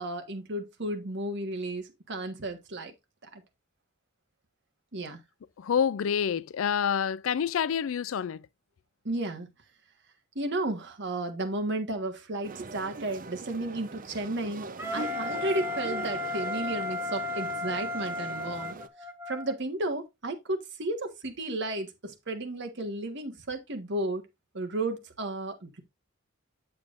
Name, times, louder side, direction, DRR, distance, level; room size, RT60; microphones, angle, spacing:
voice 1, 0.0-2.9 3.3-3.4 4.9-5.2 9.0-9.5 10.3-14.7 14.9-18.7 19.3-24.2 24.5-25.8, right 2 dB, 60° right, 1.5 m, -33 dB
voice 2, 5.6-8.4, left 7 dB, 75° left, 0.4 m, -27 dB
sound 1, 12.4-18.9, right 3 dB, 40° right, 0.6 m, -42 dB
Wind instrument woodwind instrument, 14.8-19.5, left 2 dB, 10° right, 1.1 m, -34 dB
8.7 x 7.4 x 2.5 m
head